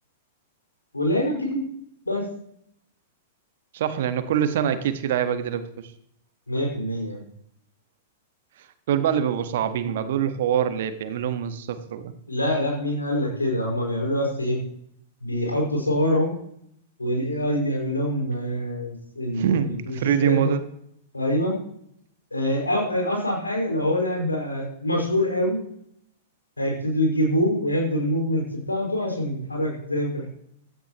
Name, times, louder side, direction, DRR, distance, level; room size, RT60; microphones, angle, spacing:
voice 1, 0.9-1.7 2.0-2.3 6.5-7.2 12.3-14.6 15.2-16.3 17.0-20.5 21.1-21.5 22.3-25.6 26.6-30.3, left 1 dB, 85° left, 0 dB, 5.7 m, -25 dB
voice 2, 3.7-5.9 8.9-12.1 19.3-20.6, right 9 dB, 55° right, 10 dB, 1.5 m, -24 dB
16.0 x 13.5 x 3.1 m, 0.71 s
figure-of-eight pair, 100°, 0 cm